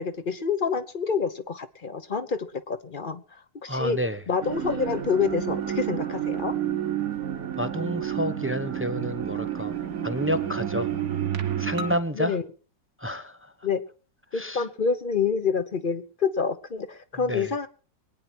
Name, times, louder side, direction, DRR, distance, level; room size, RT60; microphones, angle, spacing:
voice 1, 0.0-3.2 3.6-4.0 4.3-6.5 12.1-12.4 13.6-13.8 14.3-17.7, left 5 dB, 35° left, 11 dB, 0.9 m, -27 dB
voice 2, 3.7-4.2 7.5-9.8 10.0-10.9 11.6-12.4 13.0-13.5 14.3-14.6 17.3-17.5, equal, 15° right, 12 dB, 0.4 m, -29 dB
sound 1, 4.4-12.0, right 10 dB, 55° right, 1.5 m, -30 dB
23.0 x 9.6 x 4.4 m, 0.37 s
omnidirectional pair, 1.8 m